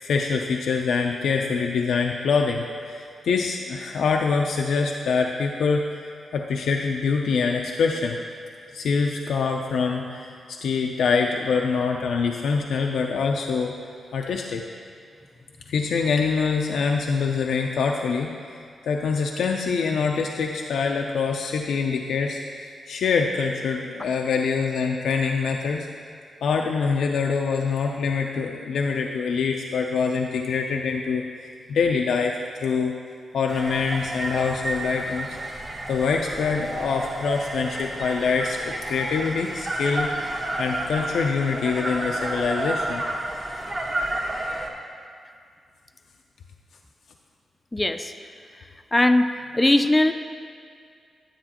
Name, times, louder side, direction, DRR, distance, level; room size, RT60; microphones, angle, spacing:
voice 1, 0.0-5.9 6.3-8.2 8.7-13.8 14.1-14.6 15.7-25.9 26.4-32.9 33.3-35.3 35.9-40.1 40.6-43.0, left 5 dB, 85° left, 2 dB, 0.4 m, -25 dB
sound 1, 33.5-44.7, right 1 dB, 35° right, 1.2 m, -31 dB
voice 2, 47.7-48.1 48.9-50.1, left 1 dB, 15° left, 8 dB, 0.3 m, -20 dB
10.0 x 8.6 x 2.9 m, 2.2 s
cardioid pair, 100°, 0 cm